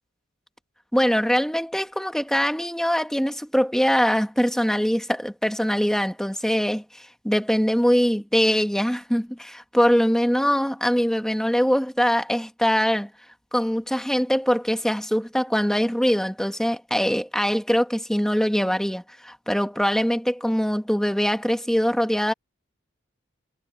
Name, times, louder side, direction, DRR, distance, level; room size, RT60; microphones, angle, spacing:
voice 1, 0.9-13.1 13.5-22.3, equal, 5° left, 1.6 m, -22 dB
head